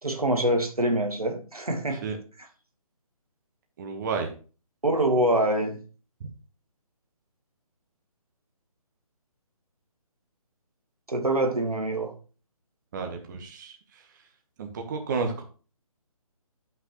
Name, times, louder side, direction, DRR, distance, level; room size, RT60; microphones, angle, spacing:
voice 1, 0.0-2.1 2.4-2.5 4.8-5.8 11.1-12.1, right 1 dB, 80° right, 4 dB, 1.7 m, -25 dB
voice 2, 3.8-4.3 12.9-13.8 14.6-15.4, right 4 dB, 30° right, 3 dB, 1.2 m, -31 dB
11.5 x 5.9 x 3.1 m, 0.37 s
figure-of-eight pair, 145°, 19 cm